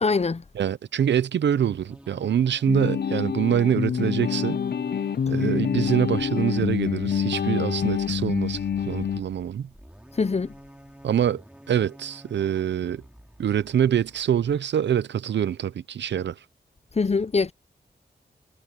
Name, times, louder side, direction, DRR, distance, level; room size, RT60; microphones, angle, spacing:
voice 1, 0.0-0.4 10.1-10.5 16.9-17.5, left 4 dB, 35° left, 0.8 m, -23 dB
voice 2, 0.6-4.6 5.3-9.7 11.0-11.4 11.7-13.0 13.4-16.4, right 9 dB, 90° right, 0.7 m, -25 dB
sound 1, 1.5-14.6, equal, 5° right, 3.0 m, -49 dB
sound 2, 2.7-9.2, left 7 dB, 65° left, 0.7 m, -26 dB
cardioid pair, 50°, 18 cm